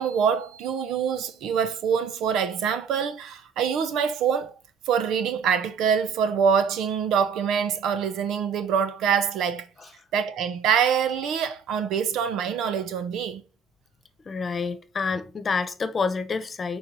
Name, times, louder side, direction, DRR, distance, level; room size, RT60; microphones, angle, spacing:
voice 1, 0.0-4.5 4.9-9.7 10.1-13.4, right 7 dB, 85° right, 0.9 m, -25 dB
voice 2, 14.2-16.8, left 4 dB, 40° left, 1.0 m, -28 dB
7.2 x 4.8 x 4.0 m
cardioid pair, 90°, 0 cm